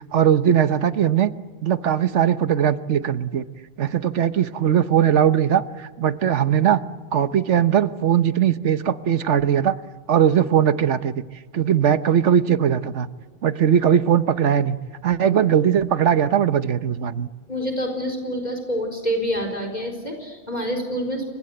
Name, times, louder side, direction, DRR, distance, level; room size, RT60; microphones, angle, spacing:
voice 1, 0.1-1.3 1.6-3.4 3.8-6.8 7.1-9.8 10.1-11.2 11.5-13.1 13.4-14.8 15.0-17.3, right 9 dB, 75° right, 12 dB, 1.3 m, -19 dB
voice 2, 17.5-21.3, equal, 35° left, 4 dB, 4.5 m, -27 dB
30.0 x 25.0 x 7.9 m, 1.4 s
omnidirectional pair, 1.2 m